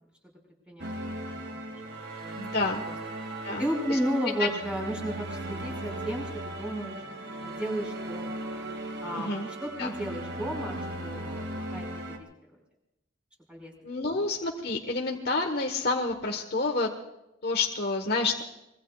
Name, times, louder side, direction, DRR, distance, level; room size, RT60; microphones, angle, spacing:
sound 1, 0.8-12.2, right 1 dB, 60° right, 2.4 m, -37 dB
voice 1, 1.3-2.4 2.8-2.9 3.6-6.3 6.6-7.0 7.4-8.4 9.0-12.3 13.5-13.7, equal, 5° right, -1 dB, 5.6 m, -33 dB
voice 2, 2.4-2.8 3.4-4.0 9.1-9.5 9.8-9.9 13.8-16.9 17.4-18.4, left 3 dB, 55° left, 1 dB, 1.4 m, -29 dB
25.5 x 22.5 x 2.4 m, 0.93 s
head